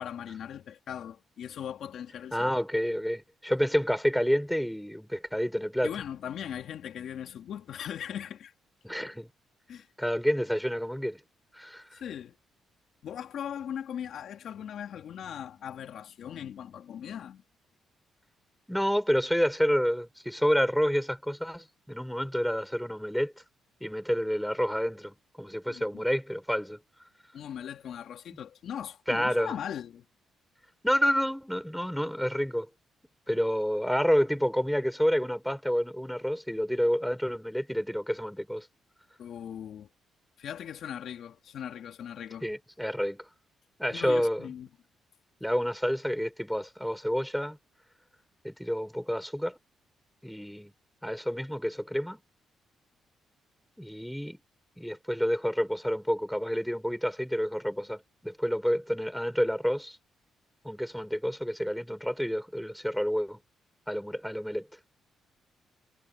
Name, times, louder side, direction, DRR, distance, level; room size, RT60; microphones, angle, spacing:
voice 1, 0.0-2.5 5.8-8.5 9.7-9.9 11.9-12.4 13.0-17.4 25.7-26.0 27.3-30.0 39.2-39.9 40.4-42.5 43.9-44.7, left 9 dB, 70° left, 2.8 m, -39 dB
voice 2, 2.3-5.9 8.8-9.3 10.0-11.2 11.5-12.0 18.7-23.3 23.8-26.8 29.1-29.6 30.8-32.7 33.3-38.7 42.4-43.3 43.8-44.5 45.4-47.6 48.4-49.6 50.2-50.7 51.0-52.2 53.8-54.4 54.8-60.0 60.6-63.4 63.9-64.7, equal, ahead, 4.5 m, -29 dB
cardioid pair, 120°, 0 cm